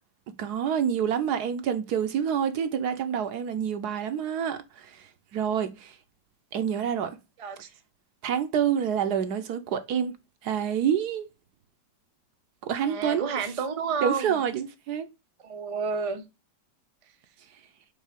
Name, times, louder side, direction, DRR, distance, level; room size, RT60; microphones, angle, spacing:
voice 1, 0.4-6.0 6.5-7.2 8.2-10.1 10.4-11.3 12.6-13.3 14.0-15.1, right 8 dB, 65° right, 1.2 m, -27 dB
voice 2, 12.8-14.4 15.4-16.2, right 5 dB, 50° right, 0.4 m, -30 dB
5.5 x 3.9 x 5.1 m
omnidirectional pair, 2.0 m